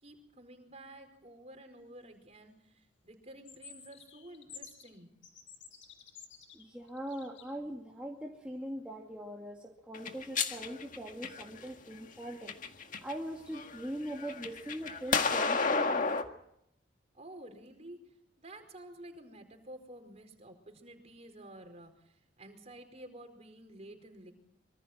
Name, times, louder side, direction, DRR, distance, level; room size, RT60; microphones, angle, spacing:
voice 1, 0.0-5.1 17.1-24.3, right 1 dB, 35° right, 5 dB, 4.8 m, -51 dB
sound 1, 3.3-4.9 5.2-7.5, left 7 dB, 80° left, 6.8 m, -51 dB
voice 2, 6.5-12.5 13.0-16.1, equal, 5° right, -1 dB, 2.3 m, -41 dB
sound 2, 9.9-11.7 12.3-13.1 13.5-16.2, left 4 dB, 45° left, 1.8 m, -31 dB
25.5 x 24.0 x 4.4 m, 0.78 s
head